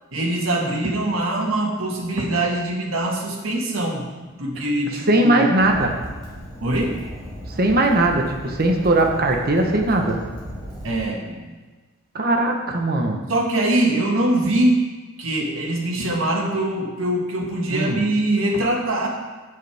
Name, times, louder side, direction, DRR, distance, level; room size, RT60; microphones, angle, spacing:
voice 1, 0.1-4.1 4.3-5.5 6.6-7.0 10.8-11.6 13.3-14.8 15.2-19.1, right 1 dB, 75° right, 0 dB, 1.8 m, -23 dB
voice 2, 5.1-5.9 7.6-10.2 12.1-13.2 17.7-18.0, right 2 dB, 50° right, 2 dB, 1.1 m, -19 dB
Fire, 5.6-11.0, equal, 25° right, 2.9 m, -36 dB
15.5 x 6.7 x 3.5 m, 1.3 s
head